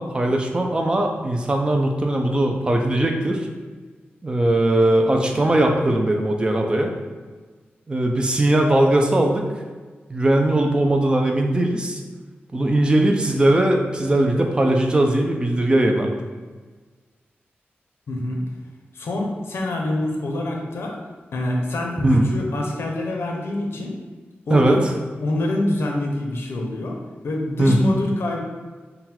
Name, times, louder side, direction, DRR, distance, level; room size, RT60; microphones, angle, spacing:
voice 1, 0.0-3.5 4.2-7.0 7.9-9.4 10.1-12.0 12.5-16.1 22.0-22.3 24.5-24.8 27.6-27.8, right 1 dB, 25° right, 2 dB, 0.4 m, -19 dB
voice 2, 18.1-18.4 18.9-20.9 21.3-23.9 24.5-24.8 25.2-27.0 27.2-28.4, left 1 dB, 85° left, 0 dB, 0.7 m, -25 dB
3.8 x 2.2 x 4.2 m, 1.4 s
wide cardioid pair, 170°, 4 cm